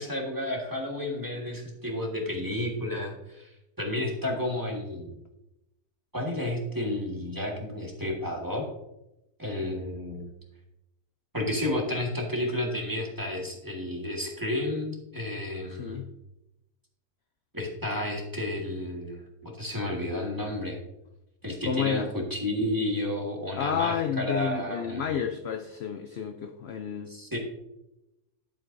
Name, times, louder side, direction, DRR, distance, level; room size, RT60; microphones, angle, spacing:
voice 1, 0.0-3.5 3.8-5.2 6.1-8.6 9.4-10.3 11.3-16.0 17.5-20.8 21.4-25.2 27.1-27.4, left 1 dB, 15° right, -1 dB, 1.7 m, -31 dB
voice 2, 15.7-16.1 21.6-22.1 23.6-27.1, left 7 dB, 65° left, 6 dB, 0.6 m, -30 dB
11.0 x 8.0 x 2.6 m, 0.91 s
omnidirectional pair, 1.6 m